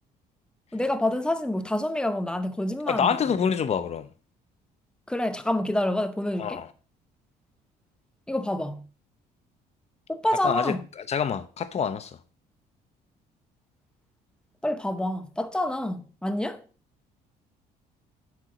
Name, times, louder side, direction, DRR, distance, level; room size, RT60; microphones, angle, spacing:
voice 1, 0.7-3.2 5.1-6.6 8.3-8.9 10.1-10.8 14.6-16.6, left 1 dB, 5° left, 0.8 m, -27 dB
voice 2, 2.9-4.1 6.4-6.7 10.4-12.1, left 7 dB, 40° left, 0.9 m, -27 dB
7.9 x 4.9 x 5.9 m
cardioid pair, 110°, 17 cm